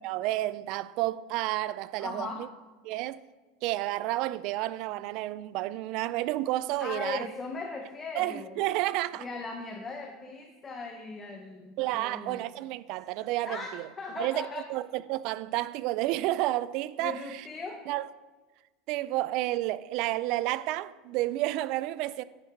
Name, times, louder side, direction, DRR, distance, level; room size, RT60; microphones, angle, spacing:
voice 1, 0.0-2.5 2.8-3.2 3.6-7.3 8.1-9.3 11.8-13.9 14.2-17.4 17.9-18.1 18.9-22.2, right 16 dB, 55° right, 0.4 m, -31 dB
voice 2, 2.0-2.5 6.8-8.6 9.2-12.4 13.4-14.7 17.0-17.9, left 3 dB, 20° left, 0.9 m, -38 dB
10.0 x 5.5 x 4.6 m
supercardioid pair, 135°, 0 cm